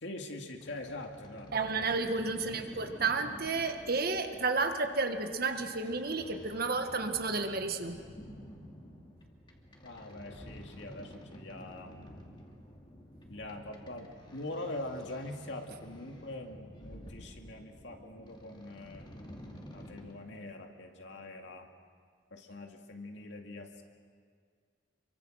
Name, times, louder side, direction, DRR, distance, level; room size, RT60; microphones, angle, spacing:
voice 1, 0.0-1.8 9.8-12.1 13.3-19.1 19.7-21.7 22.3-23.8, left 2 dB, 65° left, 3 dB, 2.3 m, -43 dB
sound 1, 0.6-20.1, equal, 25° left, 2.6 m, -51 dB
voice 2, 1.5-8.0, right 4 dB, 55° right, 6 dB, 1.6 m, -31 dB
28.0 x 24.0 x 6.4 m, 2.1 s
head